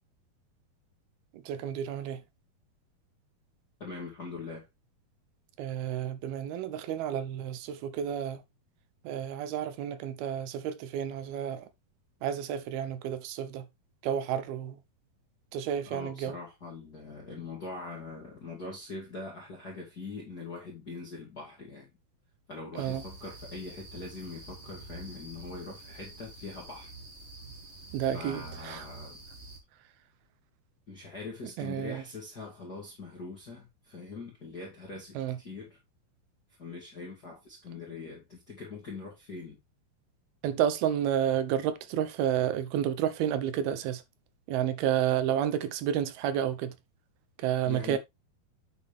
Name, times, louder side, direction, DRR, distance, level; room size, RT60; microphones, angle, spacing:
voice 1, 1.5-2.2 5.6-8.4 9.0-11.6 12.2-13.7 14.0-14.8 15.5-16.3 22.8-23.0 27.9-28.8 31.6-32.0 35.2-35.4 40.4-44.0 44.5-46.7 47.4-48.0, right 10 dB, 80° right, 2.8 m, -30 dB
voice 2, 3.8-4.7 15.8-21.9 22.5-26.9 28.1-29.2 30.9-35.8 36.6-39.6 47.6-48.0, left 3 dB, 30° left, 2.5 m, -42 dB
sound 1, 22.7-29.6, right 2 dB, 25° right, 1.8 m, -47 dB
9.2 x 6.5 x 3.3 m
omnidirectional pair, 4.4 m